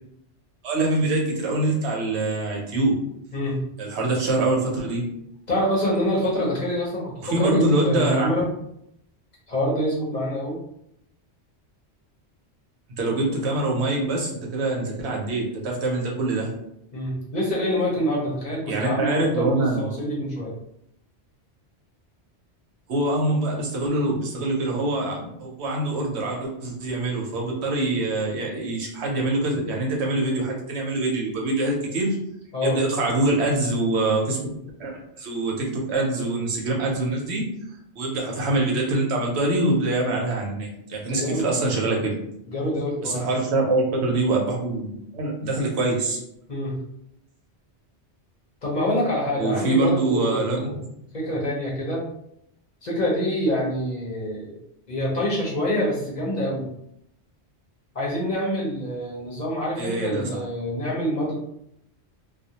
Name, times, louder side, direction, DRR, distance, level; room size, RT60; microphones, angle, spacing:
voice 1, 0.6-3.0 3.8-5.0 7.2-8.3 13.0-16.5 18.7-19.9 22.9-32.2 32.6-34.4 34.8-37.5 38.0-42.2 43.0-46.2 49.4-50.8 51.4-51.5 59.8-60.4, right 2 dB, 75° right, -1 dB, 0.9 m, -24 dB
voice 2, 3.3-3.6 5.5-8.5 9.5-10.6 16.9-20.5 32.5-32.8 41.1-41.6 42.5-43.3 46.5-46.8 48.6-50.8 51.1-52.1 52.8-54.6 54.9-56.7 57.9-61.3, equal, 50° left, -5 dB, 0.7 m, -26 dB
2.3 x 2.1 x 2.7 m, 0.76 s
omnidirectional pair, 1.1 m